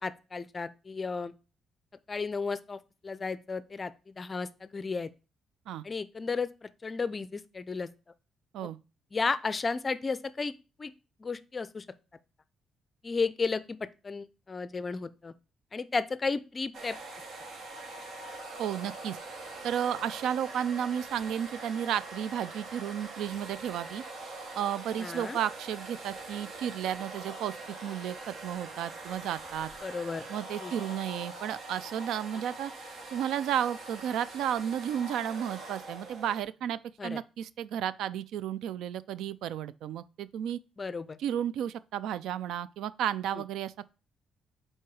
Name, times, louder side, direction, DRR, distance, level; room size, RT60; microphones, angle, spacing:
voice 1, 0.0-1.3 2.1-5.1 5.8-7.9 8.6-8.7 9.1-10.5 10.8-10.9 11.2-11.9 13.0-13.8 14.0-15.3 15.7-17.0 25.0-25.4 29.8-30.3 30.6-30.7 37.0-37.2 40.8-41.2 43.3-43.4, left 4 dB, 30° left, 0.4 m, -33 dB
sound 1, 16.7-36.4, right 2 dB, 65° right, 1.2 m, -43 dB
voice 2, 18.6-19.2 19.6-24.0 24.6-29.7 30.3-32.7 33.1-40.6 41.2-43.9, right 9 dB, 80° right, 0.3 m, -33 dB
4.7 x 4.4 x 4.7 m
cardioid pair, 90°, 0 cm